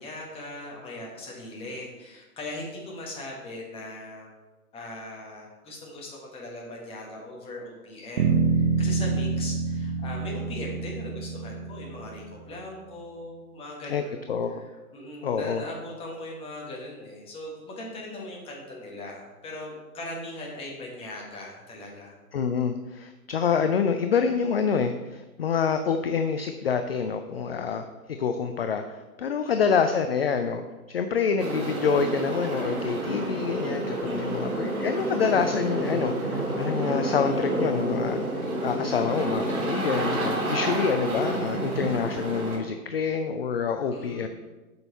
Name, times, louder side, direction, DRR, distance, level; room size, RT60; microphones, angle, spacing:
voice 1, 0.0-4.3 4.7-14.6 14.9-22.2 29.4-29.6 34.0-34.5 43.9-44.3, left 1 dB, 15° left, -1 dB, 1.3 m, -39 dB
sound 1, 8.2-12.5, right 5 dB, 50° right, 1.0 m, -27 dB
voice 2, 14.3-14.6 15.2-15.6 22.3-27.9 28.2-30.6 30.9-38.2 38.6-44.3, left 6 dB, 45° left, 8 dB, 0.4 m, -27 dB
sound 2, 31.4-42.6, right 1 dB, 70° right, 2.7 m, -29 dB
7.8 x 5.6 x 4.3 m, 1.2 s
figure-of-eight pair, 120°, 45 cm